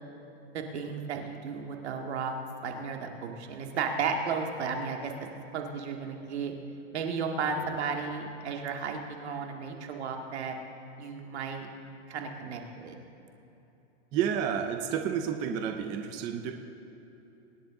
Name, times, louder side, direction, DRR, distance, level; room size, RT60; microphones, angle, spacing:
voice 1, 0.5-2.3 2.6-5.1 5.5-6.5 6.9-10.6 11.0-11.7 12.1-13.0, right 5 dB, 75° right, 2 dB, 2.0 m, -34 dB
voice 2, 7.4-7.8 14.1-16.5, right 8 dB, 15° right, 5 dB, 0.3 m, -31 dB
24.5 x 10.5 x 3.7 m, 3.0 s
supercardioid pair, 160°, 33 cm